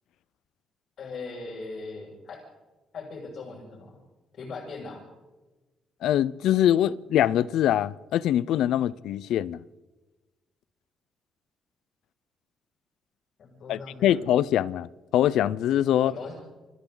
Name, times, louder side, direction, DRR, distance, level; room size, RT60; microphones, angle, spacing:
voice 1, 1.0-2.4 2.9-4.0 4.3-5.1 13.4-14.2 16.0-16.5, left 3 dB, 65° left, 6.8 m, -39 dB
voice 2, 6.0-9.6 13.7-16.1, left 11 dB, 80° left, 0.6 m, -23 dB
29.5 x 23.0 x 4.0 m
cardioid pair, 90°, 0 cm